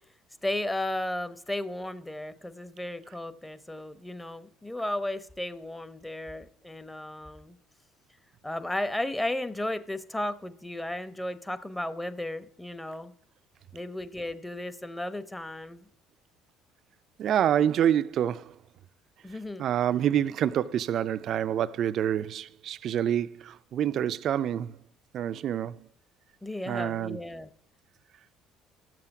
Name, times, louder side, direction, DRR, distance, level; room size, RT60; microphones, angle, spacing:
voice 1, 0.4-7.6 8.4-13.1 13.7-15.9 19.2-19.7 26.4-27.5, left 1 dB, 10° left, 0.9 m, -34 dB
voice 2, 17.2-18.6 19.6-24.8 25.1-25.9 26.7-27.2, right 10 dB, 60° right, 0.4 m, -27 dB
12.5 x 7.6 x 6.0 m
hypercardioid pair, 70°, 0 cm